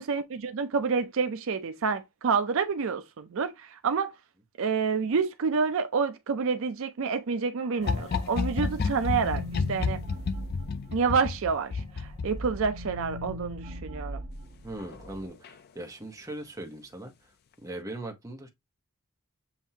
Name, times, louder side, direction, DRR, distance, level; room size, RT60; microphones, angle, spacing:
voice 1, 0.0-4.1 4.6-9.4 9.7-10.0 10.9-14.2, right 5 dB, 60° right, 0.4 m, -28 dB
sound 1, 7.6-11.5 11.9-15.3, equal, 30° right, 1.4 m, -40 dB
sound 2, 7.8-13.0 14.8-15.1 15.4-15.5, left 4 dB, 45° left, 0.4 m, -31 dB
voice 2, 14.6-17.3 17.6-18.5, right 1 dB, 15° right, 0.9 m, -40 dB
7.3 x 2.6 x 2.7 m
head